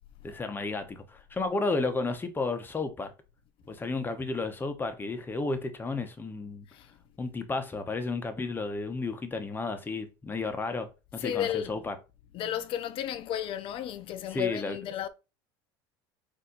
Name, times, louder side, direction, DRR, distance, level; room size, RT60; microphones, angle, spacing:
voice 1, 0.2-3.1 3.7-6.7 7.2-11.9 14.3-14.8, left 3 dB, 20° left, 0.9 m, -32 dB
voice 2, 11.2-11.8 12.3-15.1, left 10 dB, 55° left, 0.7 m, -33 dB
4.1 x 2.7 x 3.9 m
supercardioid pair, 95°, 11 cm